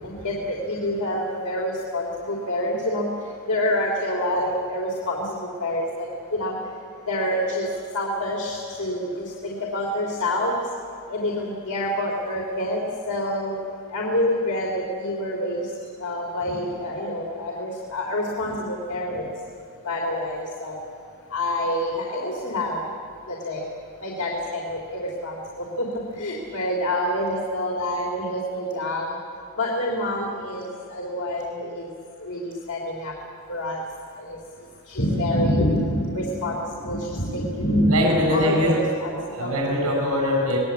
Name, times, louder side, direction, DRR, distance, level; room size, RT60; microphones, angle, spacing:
voice 1, 0.0-3.1 3.5-6.1 6.3-6.6 7.1-7.7 7.9-10.5 11.1-13.6 13.9-15.7 16.0-19.3 19.8-20.8 21.3-22.8 23.3-23.7 24.0-25.9 26.2-29.2 29.6-31.9 32.2-33.1 33.5-33.8 34.2-34.4 34.9-39.1 39.4-39.6, left 1 dB, 85° left, -2 dB, 3.4 m, -27 dB
voice 2, 37.9-38.7 39.3-40.6, left 1 dB, 75° right, -1 dB, 6.6 m, -22 dB
24.5 x 20.0 x 8.5 m, 2.4 s
head